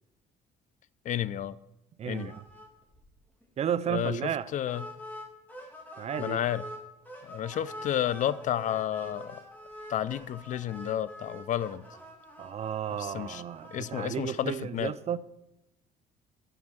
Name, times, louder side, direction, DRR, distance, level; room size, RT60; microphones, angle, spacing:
voice 1, 1.1-1.5 2.1-2.3 3.9-4.1 4.5-4.8 6.2-6.6 7.2-9.4 9.9-11.8 13.0-13.4 13.7-14.9, left 11 dB, 50° left, 0.4 m, -31 dB
voice 2, 2.0-2.4 3.6-4.5 6.0-6.5 12.4-15.2, right 9 dB, 40° right, 0.4 m, -33 dB
sound 1, 2.1-2.7 2.9-3.1 3.4-3.5 4.7-6.8 7.1-14.1, equal, 10° left, 2.1 m, -45 dB
7.8 x 5.2 x 7.4 m
cardioid pair, 110°, 17 cm